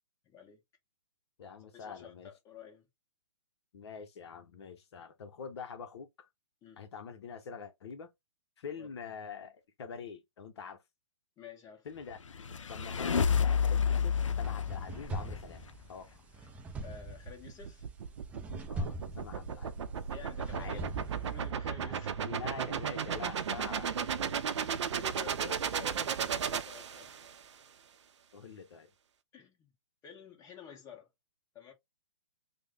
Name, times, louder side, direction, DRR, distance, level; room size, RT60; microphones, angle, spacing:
voice 1, 0.2-0.6 1.7-2.9 6.6-6.8 8.8-8.9 11.4-11.9 16.8-17.9 20.1-22.3 24.5-27.4 29.3-29.7 30.0-31.1 31.5-31.7, left 8 dB, 20° left, 1.2 m, -51 dB
voice 2, 1.4-2.3 3.7-6.3 6.8-8.1 8.6-10.8 11.8-12.2 12.7-16.1 18.7-19.8 20.5-20.8 21.8-22.0 22.2-24.5 28.3-28.9, left 6 dB, 60° left, 0.7 m, -45 dB
sound 1, 12.1-15.7, left 6 dB, 90° left, 0.5 m, -30 dB
sound 2, 14.1-21.5, right 1 dB, 10° right, 0.4 m, -43 dB
sound 3, 17.1-27.4, right 7 dB, 65° right, 0.6 m, -35 dB
3.4 x 2.1 x 3.2 m
hypercardioid pair, 140°, 16 cm